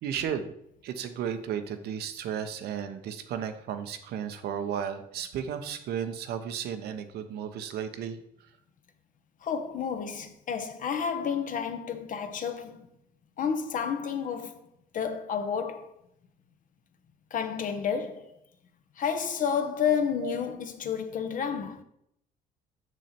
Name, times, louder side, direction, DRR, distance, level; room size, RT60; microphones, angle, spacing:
voice 1, 0.0-0.5 0.8-8.2 20.2-20.3, right 8 dB, 70° right, 0.9 m, -34 dB
voice 2, 9.4-12.9 13.4-14.7 14.9-15.9 17.3-18.4 19.0-21.8, left 7 dB, 50° left, 1.0 m, -30 dB
6.6 x 6.2 x 4.4 m
cardioid pair, 110°, 17 cm